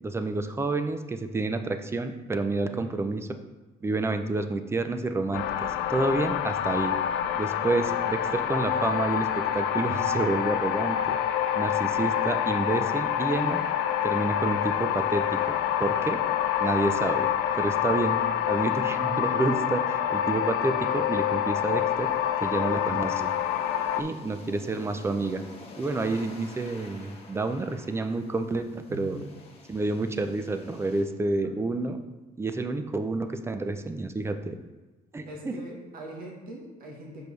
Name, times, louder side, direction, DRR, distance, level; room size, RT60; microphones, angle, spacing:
voice 1, 0.0-3.4 3.8-6.9 7.3-11.2 11.5-13.6 14.0-16.2 16.6-17.3 17.5-18.2 18.5-22.1 22.4-23.3 24.0-25.4 25.8-29.2 29.7-32.0 32.4-34.6 35.1-35.5, right 3 dB, 15° right, 8 dB, 0.4 m, -29 dB
sound 1, 5.3-24.0, left 10 dB, 85° left, 0.4 m, -27 dB
sound 2, 20.9-31.0, left 2 dB, 35° left, 1.2 m, -49 dB
voice 2, 28.9-29.2 31.4-31.5 35.2-37.2, right 1 dB, 60° right, -1 dB, 1.4 m, -41 dB
6.1 x 5.1 x 3.3 m, 1.2 s
cardioid pair, 110°, 17 cm